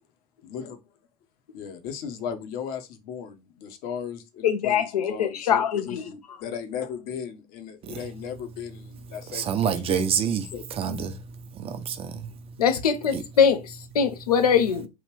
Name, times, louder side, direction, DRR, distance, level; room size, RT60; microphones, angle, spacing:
voice 1, 0.4-0.8 1.5-9.7 10.5-10.6, left 7 dB, 50° left, 0.9 m, -36 dB
voice 2, 4.4-6.0 12.6-14.9, left 7 dB, 75° left, 0.8 m, -22 dB
voice 3, 9.3-12.6 13.1-13.2, right 7 dB, 30° right, 0.6 m, -28 dB
3.1 x 2.5 x 3.3 m
figure-of-eight pair, 80°, 20 cm